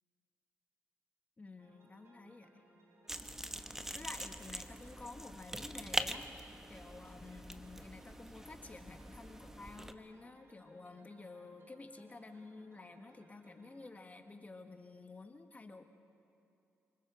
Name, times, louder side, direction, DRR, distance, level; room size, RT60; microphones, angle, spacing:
voice 1, 1.4-2.6 3.9-6.3 6.7-15.8, left 3 dB, 30° left, 6 dB, 1.4 m, -51 dB
sound 1, 1.6-14.0, right 1 dB, 60° right, 4.4 m, -66 dB
sound 2, 3.1-9.9, right 1 dB, 10° right, 1.0 m, -43 dB
29.0 x 20.0 x 5.0 m, 2.8 s
supercardioid pair, 60°, 5 cm